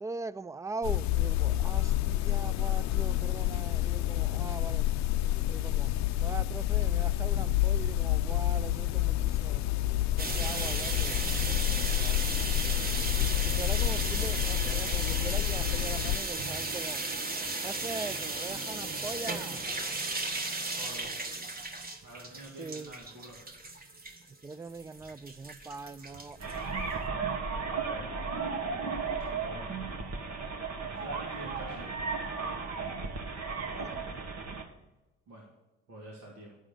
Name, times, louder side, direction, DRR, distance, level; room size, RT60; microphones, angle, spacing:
voice 1, 0.0-4.9 5.5-5.9 6.2-9.7 10.2-12.3 13.5-17.0 17.6-19.7 22.6-22.9 24.4-26.4 33.7-34.2, right 3 dB, 10° right, 0.3 m, -41 dB
sound 1, 0.8-16.2, left 15 dB, 60° left, 0.5 m, -29 dB
sound 2, 10.2-27.0, right 2 dB, 30° right, 1.4 m, -35 dB
voice 2, 20.7-21.1 22.0-23.4 27.7-28.1 29.1-29.7 30.9-31.9 35.3-35.5 35.9-36.6, right 1 dB, 80° right, 2.5 m, -47 dB
sound 3, 26.4-34.6, right 4 dB, 55° right, 1.5 m, -35 dB
11.5 x 4.9 x 7.6 m
hypercardioid pair, 55°, 31 cm